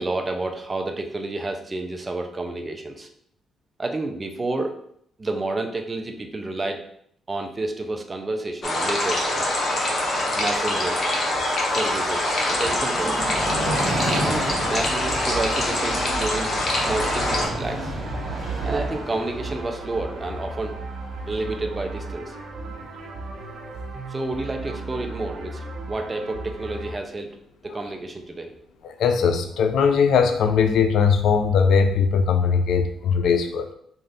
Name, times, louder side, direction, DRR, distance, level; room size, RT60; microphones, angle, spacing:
voice 1, 0.0-3.1 3.8-4.7 5.2-6.8 7.3-9.3 10.3-11.0 11.7-13.6 14.2-16.5 16.8-17.9 18.6-20.8 21.3-22.3 24.1-27.3 27.6-28.5, right 2 dB, 25° right, 5 dB, 0.5 m, -30 dB
sound 1, 8.6-17.5, left 1 dB, 40° left, 1.1 m, -24 dB
Train, 10.5-23.8 24.2-24.3, right 1 dB, 45° right, 1.2 m, -32 dB
sound 2, 18.0-26.9, right 2 dB, 60° right, 0.9 m, -36 dB
voice 2, 28.8-33.7, left 6 dB, 75° left, 6 dB, 0.4 m, -20 dB
3.2 x 2.5 x 3.9 m, 0.69 s
cardioid pair, 90°, 0 cm